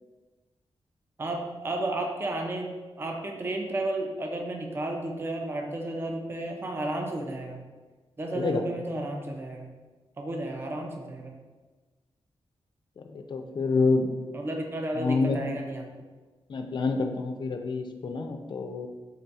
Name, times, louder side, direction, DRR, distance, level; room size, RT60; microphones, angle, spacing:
voice 1, 1.2-7.6 8.2-9.7 10.2-11.3 14.3-15.8, right 1 dB, 20° right, 2 dB, 0.4 m, -32 dB
voice 2, 13.0-14.1 14.9-15.4 16.5-18.9, left 4 dB, 45° left, 5 dB, 0.4 m, -27 dB
3.7 x 2.3 x 4.0 m, 1.3 s
wide cardioid pair, 125°, 11 cm